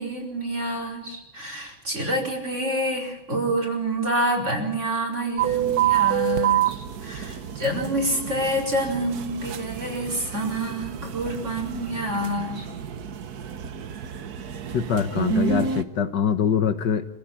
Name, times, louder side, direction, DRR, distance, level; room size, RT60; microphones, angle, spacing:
voice 1, 0.0-12.7, right 1 dB, 35° right, 0 dB, 5.0 m, -27 dB
sound 1, 5.4-15.8, right 10 dB, 55° right, 1.5 m, -28 dB
voice 2, 14.7-17.1, left 7 dB, 65° left, 9 dB, 1.6 m, -23 dB
26.5 x 15.5 x 8.8 m, 0.93 s
omnidirectional pair, 2.2 m